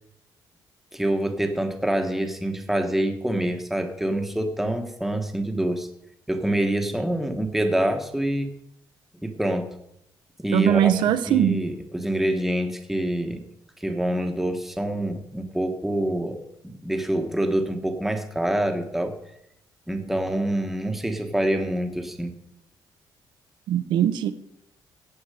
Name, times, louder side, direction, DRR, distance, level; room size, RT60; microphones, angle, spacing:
voice 1, 0.9-5.9 6.3-8.5 9.2-9.7 10.4-10.9 11.3-13.4 13.8-16.4 16.8-19.2 19.9-22.3, right 1 dB, 5° right, 5 dB, 1.2 m, -26 dB
voice 2, 10.5-11.6 23.7-24.3, right 11 dB, 80° right, 13 dB, 0.9 m, -21 dB
15.5 x 8.7 x 5.0 m, 0.78 s
cardioid pair, 160°, 8 cm